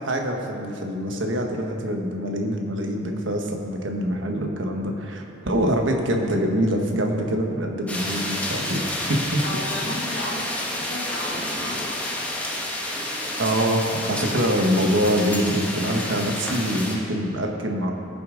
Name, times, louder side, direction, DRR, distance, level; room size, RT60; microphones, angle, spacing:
voice 1, 0.0-8.8 9.1-9.4 13.4-17.9, equal, 85° right, 2 dB, 1.3 m, -24 dB
sound 1, 7.9-17.0, left 1 dB, 10° left, 1.3 m, -29 dB
voice 2, 9.4-12.0, left 1 dB, 75° left, -3 dB, 2.3 m, -34 dB
19.0 x 6.9 x 3.8 m, 2.6 s
head